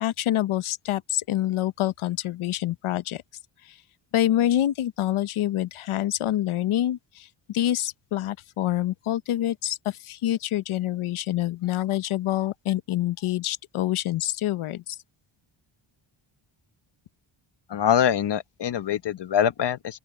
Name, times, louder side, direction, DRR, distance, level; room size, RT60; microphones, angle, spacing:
voice 1, 0.0-3.2 3.7-3.8 4.1-15.0, left 13 dB, 90° left, 0.9 m, -26 dB
voice 2, 17.7-20.0, left 9 dB, 60° left, 1.3 m, -24 dB
open air
wide cardioid pair, 125°, 48 cm